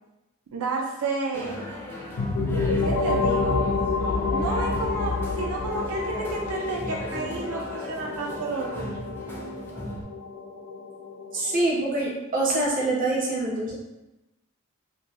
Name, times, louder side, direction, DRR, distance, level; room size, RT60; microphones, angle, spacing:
voice 1, 0.5-1.6 2.8-3.6 4.3-9.1, right 3 dB, 85° right, 0 dB, 0.4 m, -31 dB
sound 1, 1.3-10.0, left 1 dB, 10° left, 0.4 m, -36 dB
sound 2, 2.2-11.7, left 3 dB, 85° left, 0.4 m, -28 dB
voice 2, 11.3-13.7, right 2 dB, 40° right, -4 dB, 0.8 m, -25 dB
2.7 x 2.5 x 3.2 m, 1.0 s
head